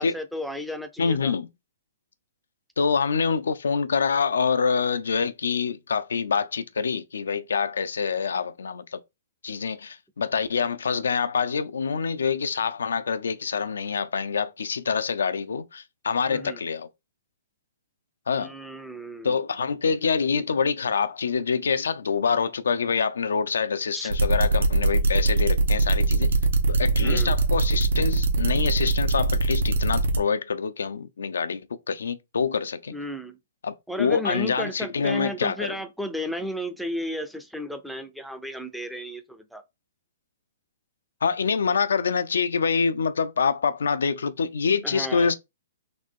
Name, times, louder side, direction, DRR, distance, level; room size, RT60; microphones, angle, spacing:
voice 1, 0.0-1.3 16.3-16.6 18.3-19.3 23.9-24.1 27.0-27.3 32.9-33.4 33.9-39.6 44.8-45.3, equal, ahead, 0.5 m, -34 dB
voice 2, 1.0-1.5 2.8-9.0 9.4-16.9 18.3-18.5 19.2-26.3 26.7-33.0 33.6-35.8 41.2-45.3, left 5 dB, 90° left, 0.5 m, -26 dB
sound 1, 24.1-30.2, right 3 dB, 80° right, 1.2 m, -21 dB
3.9 x 2.8 x 3.7 m
hypercardioid pair, 155°, 0 cm